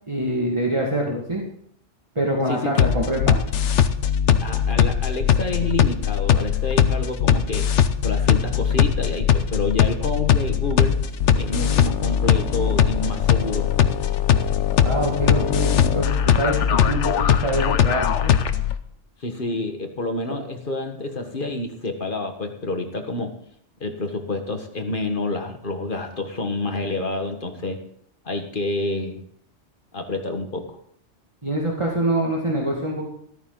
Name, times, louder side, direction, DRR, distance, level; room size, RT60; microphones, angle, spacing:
voice 1, 0.1-1.4 2.2-3.4 14.8-18.3 31.4-33.1, right 1 dB, 25° right, -2 dB, 2.1 m, -25 dB
voice 2, 2.5-2.9 4.4-7.8 8.0-11.0 11.3-13.7 19.2-23.3 23.8-27.8 28.2-29.2 29.9-30.8, left 2 dB, 50° left, 5 dB, 1.7 m, -28 dB
sound 1, 2.8-18.7, left 8 dB, 90° left, 1.1 m, -20 dB
14.0 x 13.5 x 3.9 m, 0.65 s
omnidirectional pair, 1.2 m